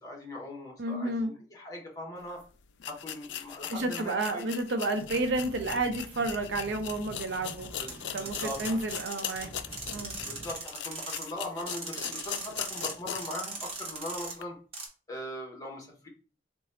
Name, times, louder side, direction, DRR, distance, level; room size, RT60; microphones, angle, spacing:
voice 1, 0.0-2.4 2.9-4.5 7.8-8.8 10.2-14.6 15.1-16.1, left 1 dB, 20° left, 1.1 m, -40 dB
voice 2, 0.8-1.3 3.7-7.7 8.1-9.5 9.9-10.2, right 2 dB, 65° right, 0.6 m, -31 dB
sound 1, 2.3-2.4 2.8-13.4 13.8-13.9 14.4-14.5, left 9 dB, 70° left, 0.4 m, -40 dB
sound 2, 4.9-9.1 9.3-10.7, right 1 dB, 10° right, 0.6 m, -48 dB
sound 3, 7.9-9.5 9.7-11.3 11.7-12.9 13.2-14.3 14.7-14.9, right 3 dB, 35° right, 1.0 m, -39 dB
3.9 x 2.2 x 4.2 m
head